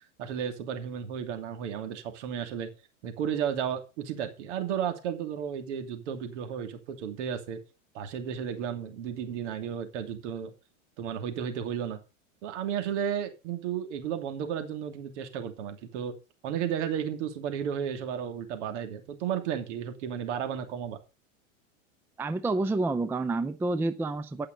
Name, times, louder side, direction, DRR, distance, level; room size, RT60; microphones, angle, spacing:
voice 1, 0.2-2.7 3.0-7.6 7.9-10.5 11.0-12.0 12.4-16.1 16.4-21.0, right 8 dB, 65° right, 2.9 m, -33 dB
voice 2, 22.2-24.5, right 2 dB, 5° right, 0.5 m, -29 dB
15.5 x 5.8 x 5.2 m
hypercardioid pair, 115°, 39 cm